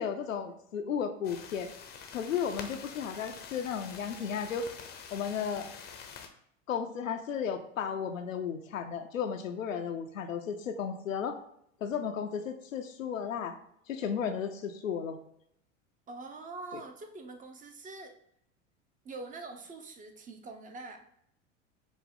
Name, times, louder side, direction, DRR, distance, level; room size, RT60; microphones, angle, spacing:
voice 1, 0.0-1.7 2.1-4.7 5.1-5.7 6.7-11.4 11.8-13.6 13.9-15.2, left 7 dB, 90° left, 5 dB, 0.5 m, -34 dB
sound 1, 1.2-6.3, left 6 dB, 25° left, 0.6 m, -46 dB
voice 2, 16.1-18.1 19.0-21.0, right 3 dB, 20° right, 5 dB, 0.6 m, -44 dB
5.0 x 2.1 x 3.6 m, 0.71 s
hypercardioid pair, 80°, 38 cm